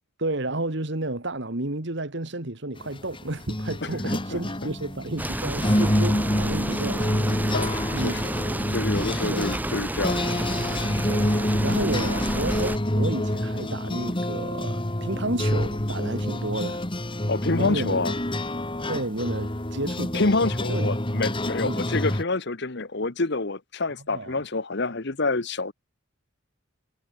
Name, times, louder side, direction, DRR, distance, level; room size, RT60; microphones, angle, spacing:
voice 1, 0.2-7.2 7.9-8.3 9.2-9.5 11.1-11.4 11.6-16.8 17.5-18.0 18.9-20.3 20.7-20.9 21.6-21.8 24.1-24.4, right 2 dB, 55° right, 1.9 m, -31 dB
sound 1, 2.8-22.2, left 1 dB, 25° left, 2.1 m, -27 dB
sound 2, 5.2-12.8, right 1 dB, 10° right, 0.9 m, -30 dB
voice 2, 7.5-8.2 8.7-10.2 17.3-18.1 20.1-25.7, left 3 dB, 55° left, 1.2 m, -27 dB
head